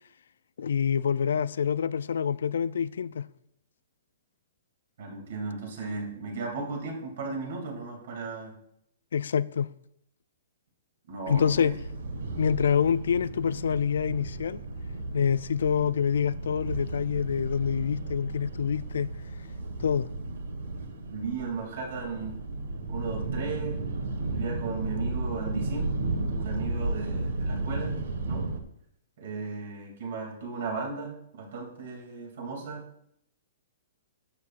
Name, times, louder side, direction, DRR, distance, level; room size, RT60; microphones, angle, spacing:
voice 1, 0.6-3.3 9.1-9.7 11.3-11.8 12.4-14.6 15.1-19.1 19.8-20.1, left 7 dB, 75° left, 0.3 m, -26 dB
voice 2, 5.0-8.5 11.1-11.7 21.1-22.3 22.9-23.8 24.3-26.0 26.4-28.0 28.3-28.5 29.2-32.8, right 4 dB, 50° right, 2.6 m, -35 dB
sound 1, 11.3-28.6, right 2 dB, 75° right, 1.5 m, -34 dB
11.5 x 7.8 x 2.5 m
hypercardioid pair, 175°, 0 cm